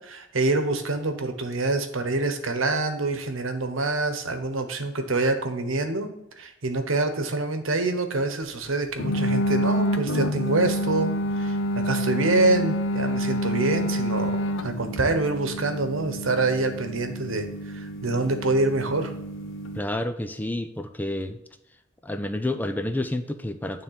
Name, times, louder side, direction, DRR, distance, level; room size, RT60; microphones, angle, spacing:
voice 1, 0.0-6.1 6.4-14.3 14.6-19.1, right 2 dB, 80° right, 7 dB, 1.1 m, -26 dB
sound 1, 9.0-19.8, equal, 70° left, 0.7 m, -28 dB
voice 2, 19.7-21.4 22.0-23.8, left 1 dB, 10° left, 9 dB, 0.3 m, -29 dB
9.3 x 3.7 x 5.7 m, 0.84 s
head